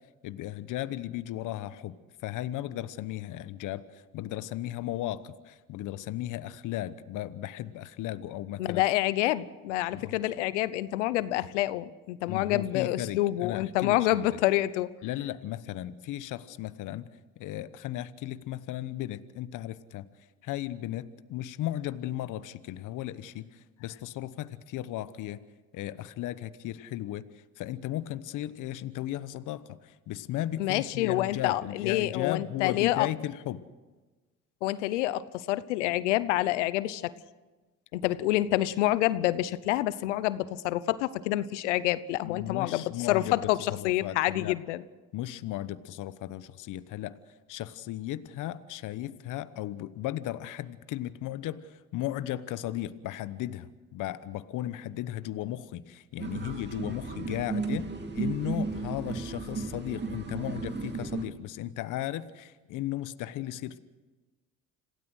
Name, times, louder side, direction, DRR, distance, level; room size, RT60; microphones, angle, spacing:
voice 1, 0.2-1.9 2.2-8.8 9.9-10.2 12.3-14.3 15.0-20.0 20.4-25.4 25.7-33.6 42.2-44.6 45.1-47.2 47.5-63.8, left 13 dB, 65° left, 14 dB, 1.1 m, -36 dB
voice 2, 8.6-14.9 30.6-33.1 34.6-37.1 37.9-44.8, left 15 dB, 90° left, 17 dB, 0.9 m, -27 dB
sound 1, 56.2-61.2, right 4 dB, 30° right, 2.5 m, -34 dB
27.0 x 16.5 x 6.4 m, 1.3 s
supercardioid pair, 70°, 34 cm